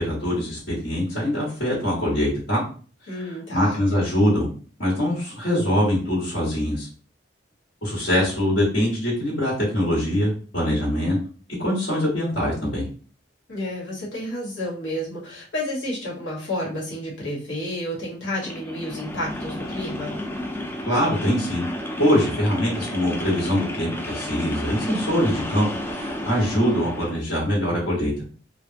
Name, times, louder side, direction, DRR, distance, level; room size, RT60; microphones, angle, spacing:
voice 1, 0.0-2.6 3.5-4.5 4.8-6.9 7.8-11.2 11.6-12.8 20.9-21.7 22.0-28.3, equal, 70° left, -6 dB, 1.6 m, -23 dB
voice 2, 3.1-3.8 13.5-20.1, left 1 dB, 90° left, -4 dB, 1.5 m, -30 dB
sound 1, 18.3-27.2, left 1 dB, 10° left, 0.3 m, -32 dB
3.3 x 2.3 x 2.8 m, 0.40 s
head